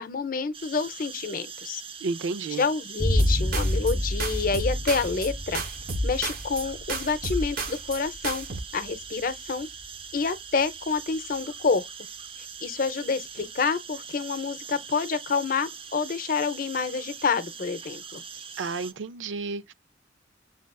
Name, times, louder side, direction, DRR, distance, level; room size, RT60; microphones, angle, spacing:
voice 1, 0.0-1.8 2.5-5.6 6.0-8.5 8.7-9.7 10.1-11.9 12.6-18.2, left 5 dB, 50° left, 0.6 m, -28 dB
sound 1, 0.5-18.9, right 6 dB, 30° right, 0.5 m, -42 dB
voice 2, 2.0-2.6 18.6-19.7, right 4 dB, 85° right, 0.5 m, -31 dB
sound 2, 3.0-10.4, left 1 dB, 15° left, 0.7 m, -30 dB
sound 3, 3.2-3.9 4.2-5.3 5.5-6.6 6.9-8.0 8.2-8.6, right 2 dB, 55° right, 0.9 m, -31 dB
7.2 x 2.4 x 2.2 m
head